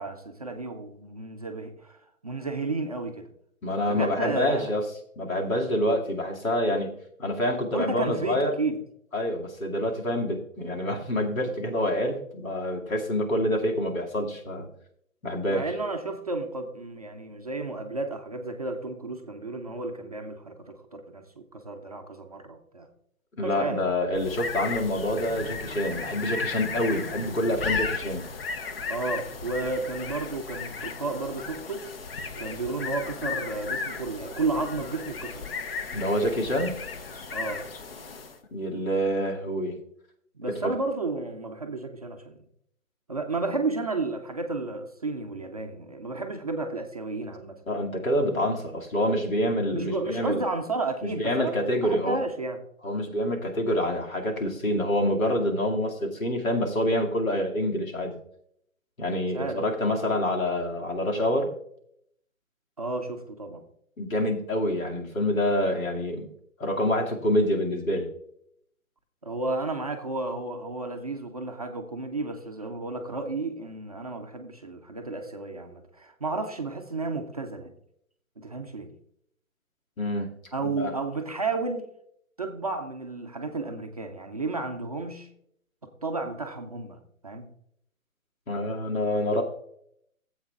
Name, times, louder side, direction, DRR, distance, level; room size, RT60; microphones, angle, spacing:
voice 1, 0.0-2.0 2.2-3.3 3.8-4.8 7.7-8.8 15.5-22.9 23.4-24.0 28.9-31.9 32.4-35.5 37.3-37.6 40.3-42.4 43.1-47.6 49.7-52.6 59.3-60.1 62.8-63.6 69.2-77.7 78.4-78.9 80.5-81.9 82.4-85.3 85.8-87.5, right 3 dB, 30° right, 3 dB, 0.5 m, -32 dB
voice 2, 3.6-4.8 5.2-6.9 7.2-8.5 9.1-14.7 15.2-15.7 23.4-28.3 35.9-36.8 38.5-39.8 40.6-40.7 47.7-50.4 51.1-52.2 52.8-58.2 59.0-61.5 64.0-66.3 66.6-68.1 80.0-80.3 80.6-80.9 88.5-89.4, left 1 dB, 75° left, 1 dB, 2.4 m, -27 dB
sound 1, 24.1-38.4, left 4 dB, 45° left, 0.9 m, -35 dB
15.5 x 7.9 x 2.4 m, 0.70 s
figure-of-eight pair, 155°, 42 cm